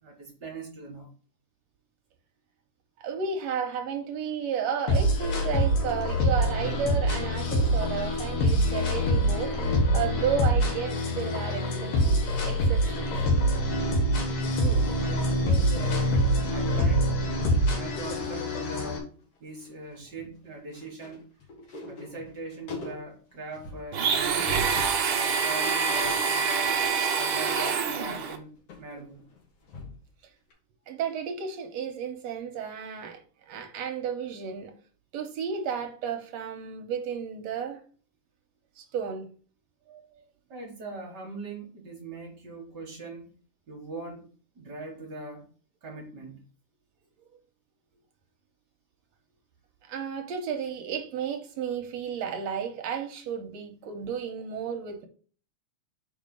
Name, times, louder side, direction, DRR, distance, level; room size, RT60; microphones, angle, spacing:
voice 1, 0.0-1.1 14.6-16.2 16.5-17.2 17.7-19.1 19.4-21.2 21.8-24.6 25.0-26.8 27.1-29.2 40.5-43.3 43.7-44.3 44.5-45.5 45.8-46.4, right 2 dB, 45° right, 1.6 m, -41 dB
voice 2, 3.0-9.5 9.9-11.9 12.4-13.1 30.9-33.2 33.5-34.7 35.1-37.8 38.8-39.3 39.9-40.0 49.9-55.1, right 7 dB, 70° right, 1.8 m, -32 dB
sound 1, 4.9-19.0, equal, 90° left, 3.0 m, -25 dB
sound 2, 13.9-16.1 16.4-16.6 16.9-17.7 18.3-18.9 19.2-25.1 25.5-30.2 30.5-30.6, left 3 dB, 55° left, 2.5 m, -44 dB
Domestic sounds home sounds, 23.9-28.4, right 5 dB, 85° right, 1.1 m, -26 dB
5.2 x 4.6 x 5.3 m
omnidirectional pair, 3.7 m